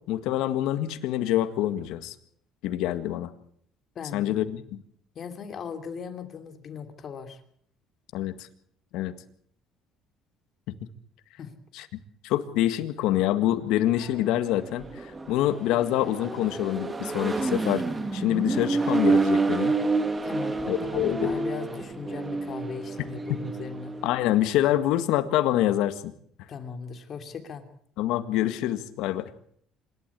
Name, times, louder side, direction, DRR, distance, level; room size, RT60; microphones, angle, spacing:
voice 1, 0.1-2.1 2.6-3.3 4.1-4.8 8.1-8.4 8.9-9.1 10.7-10.8 11.8-11.9 12.2-17.8 18.1-19.7 20.7-21.5 23.3-23.4 24.0-26.1 28.0-29.3, left 13 dB, 80° left, 11 dB, 1.8 m, -26 dB
voice 2, 3.9-4.3 5.1-7.4 11.4-11.5 20.2-24.0 26.5-27.7, left 6 dB, 45° left, 7 dB, 2.9 m, -38 dB
Accelerating revving vroom, 13.9-24.3, right 3 dB, 20° right, 2.0 m, -29 dB
26.5 x 12.5 x 8.4 m, 0.64 s
cardioid pair, 120°, 0 cm